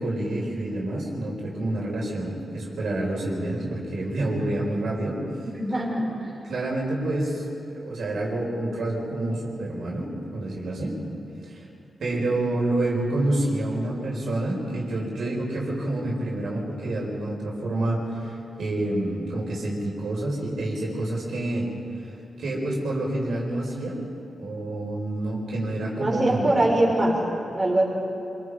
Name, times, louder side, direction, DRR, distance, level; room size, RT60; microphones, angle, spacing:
voice 1, 0.0-5.2 6.4-7.4 7.8-11.0 11.5-11.6 12.0-21.7 22.4-24.0 24.4-26.6, right 1 dB, 75° right, -4 dB, 5.5 m, -28 dB
voice 2, 5.4-6.3 26.0-27.2 27.5-27.8, right 1 dB, 25° right, -3 dB, 5.3 m, -23 dB
27.5 x 23.0 x 5.2 m, 2.8 s
cardioid pair, 100°, 0 cm